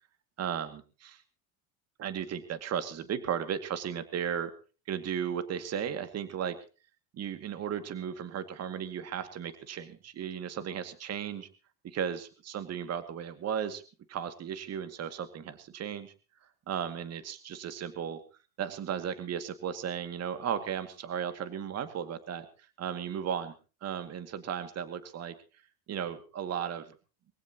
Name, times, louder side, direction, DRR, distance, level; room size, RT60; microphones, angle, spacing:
voice 1, 0.4-1.2 2.0-4.5 4.9-6.6 7.1-11.5 11.8-13.8 14.1-16.1 16.4-18.2 18.6-23.5 23.8-25.4 25.9-26.9, right 8 dB, 35° right, 10 dB, 2.3 m, -35 dB
23.5 x 16.0 x 3.0 m, 0.35 s
supercardioid pair, 115°, 43 cm